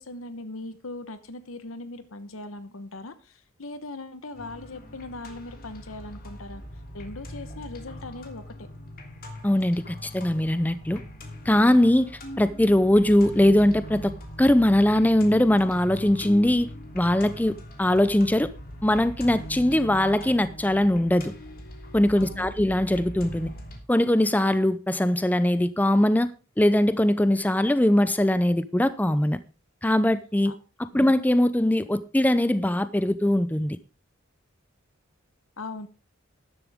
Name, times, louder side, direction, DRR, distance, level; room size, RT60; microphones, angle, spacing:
voice 1, 0.0-6.6 6.9-8.5 22.2-22.5 30.4-30.6 30.9-31.1 35.6-35.9, left 2 dB, 75° left, 1.1 m, -39 dB
sound 1, 4.3-23.8, equal, 45° left, 3.1 m, -41 dB
voice 2, 9.4-11.0 11.5-12.1 12.4-14.1 14.4-16.7 16.9-18.5 18.8-21.3 21.9-23.5 23.9-26.3 26.6-29.4 29.8-30.5 30.9-33.8, left 1 dB, 10° left, 0.5 m, -21 dB
13.5 x 11.0 x 3.6 m
head